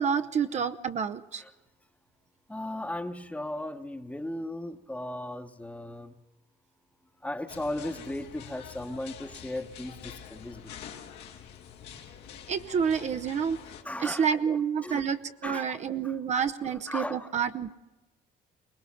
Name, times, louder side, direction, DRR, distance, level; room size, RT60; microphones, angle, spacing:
voice 1, 0.0-1.4 12.5-13.6 14.0-17.8, right 7 dB, 40° right, 0.8 m, -29 dB
voice 2, 2.5-6.2 7.2-10.7 13.3-13.5 13.8-14.3 14.8-15.1 15.4-16.2 16.6-17.4, left 1 dB, 10° left, 1.1 m, -37 dB
sound 1, 7.5-13.8, left 8 dB, 85° left, 2.6 m, -46 dB
23.5 x 19.5 x 5.7 m
cardioid pair, 110°, 17 cm